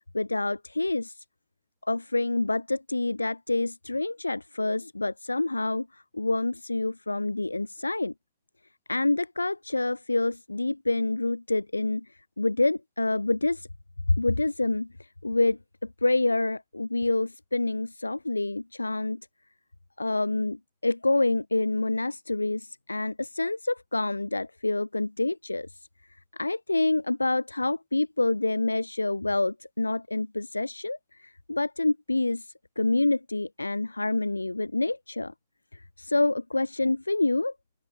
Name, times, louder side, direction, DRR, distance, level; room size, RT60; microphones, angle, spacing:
voice 1, 0.1-1.2 1.9-5.9 6.1-8.1 8.9-12.0 12.4-13.7 14.1-14.9 15.2-15.6 16.0-19.2 20.0-20.6 20.8-25.7 26.4-32.5 32.8-35.3 35.7-37.5, left 2 dB, 85° left, 4.9 m, -27 dB
figure-of-eight pair, 90°, 0 cm